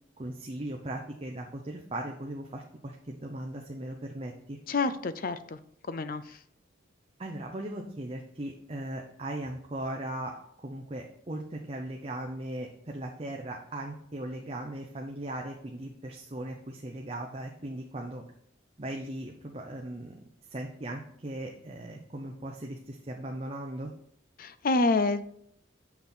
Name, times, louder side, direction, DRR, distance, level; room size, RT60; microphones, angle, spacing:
voice 1, 0.2-4.6 7.2-18.2 18.8-20.1 20.5-23.9, right 1 dB, 30° right, 1 dB, 0.7 m, -38 dB
voice 2, 4.7-5.6 5.9-6.4 24.4-25.3, left 3 dB, 45° left, 13 dB, 0.5 m, -28 dB
7.2 x 6.0 x 4.3 m, 0.68 s
head